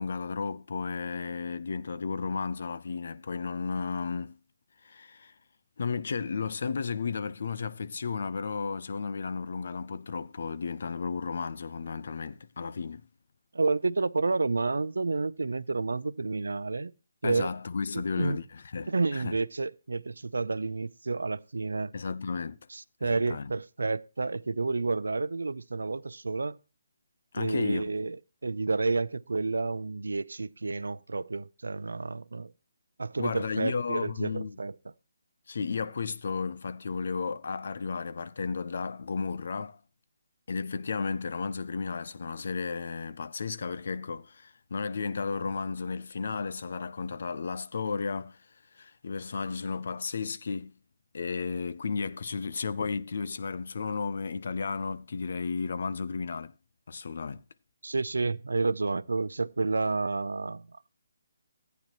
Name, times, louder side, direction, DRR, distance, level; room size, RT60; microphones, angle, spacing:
voice 1, 0.0-4.4 4.8-5.3 5.8-13.0 17.2-19.4 21.9-22.6 23.0-23.5 27.3-27.8 33.2-34.6 35.5-39.8 40.5-48.4 48.7-50.7 51.1-56.5 56.9-57.4, left 5 dB, 60° left, 0.6 m, -33 dB
voice 2, 13.5-16.9 17.2-17.5 18.2-18.4 18.9-21.9 22.7-26.6 27.3-28.2 28.4-32.5 33.0-34.7 57.8-60.7, right 3 dB, 90° right, 0.5 m, -30 dB
14.5 x 9.2 x 2.9 m
hypercardioid pair, 160°, 0 cm